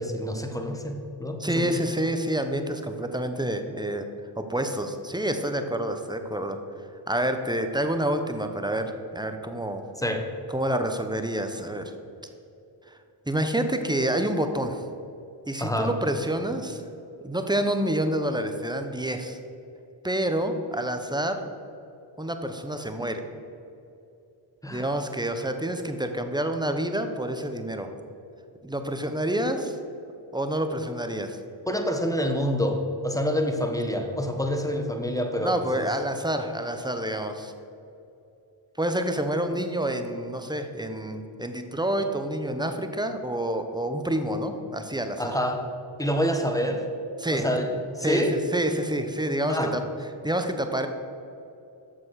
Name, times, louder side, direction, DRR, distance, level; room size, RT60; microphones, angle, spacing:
voice 1, 0.0-1.7 10.0-10.3 15.6-15.9 24.6-24.9 31.6-35.9 45.2-45.7 46.0-46.9 47.3-48.4 49.5-49.8, equal, 5° left, 4 dB, 1.2 m, -27 dB
voice 2, 1.4-4.1 4.4-6.6 7.1-9.8 10.5-11.9 12.9-13.0 13.3-14.8 15.5-16.8 17.2-19.4 20.0-21.4 22.2-23.2 24.7-27.9 28.6-29.8 30.3-31.4 35.4-37.5 38.8-45.4 47.2-47.5 48.0-49.8 50.2-50.9, right 1 dB, 10° right, 7 dB, 0.9 m, -28 dB
7.1 x 6.2 x 6.3 m, 2.7 s
cardioid pair, 45°, 49 cm